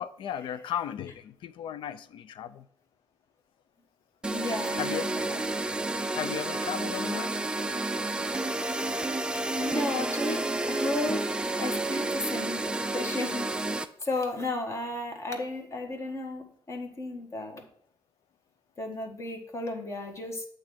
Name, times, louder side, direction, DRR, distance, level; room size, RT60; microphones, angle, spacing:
voice 1, 0.0-2.7 4.8-5.1 6.1-7.4, left 10 dB, 75° left, 0.4 m, -35 dB
sound 1, 4.2-13.9, right 2 dB, 10° right, 0.3 m, -30 dB
voice 2, 4.3-5.4 6.3-6.4 9.3-11.3 11.6-12.6 12.9-17.6 18.8-20.5, left 2 dB, 35° left, 1.3 m, -34 dB
8.2 x 3.2 x 6.2 m
cardioid pair, 125°, 9 cm